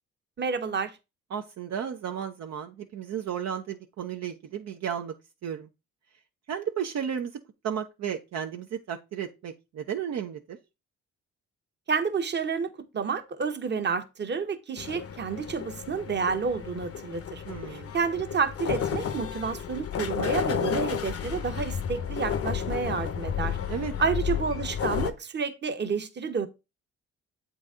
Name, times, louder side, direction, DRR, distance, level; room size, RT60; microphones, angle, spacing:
voice 1, 0.4-0.9 11.9-17.4 17.7-23.6 24.0-26.5, right 5 dB, 35° right, 1.0 m, -30 dB
voice 2, 1.3-5.1 5.4-5.7 6.5-7.3 7.6-10.6 17.5-17.9 23.7-23.9, right 8 dB, 60° right, 0.7 m, -33 dB
sound 1, 14.8-25.1, left 8 dB, 50° left, 0.8 m, -32 dB
7.9 x 4.0 x 3.7 m
cardioid pair, 90°, 30 cm